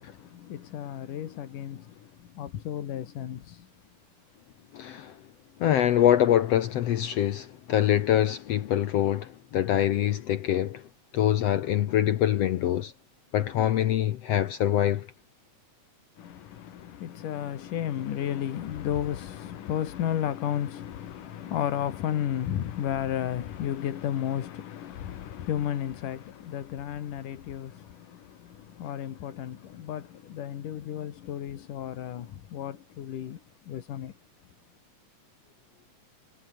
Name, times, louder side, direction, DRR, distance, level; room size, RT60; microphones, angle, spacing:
voice 1, 0.0-3.7 16.2-34.1, left 10 dB, 85° left, 3.4 m, -33 dB
voice 2, 4.7-5.2 5.6-10.9 11.1-12.9 13.3-15.1, left 11 dB, 65° left, 1.8 m, -24 dB
omnidirectional pair, 3.6 m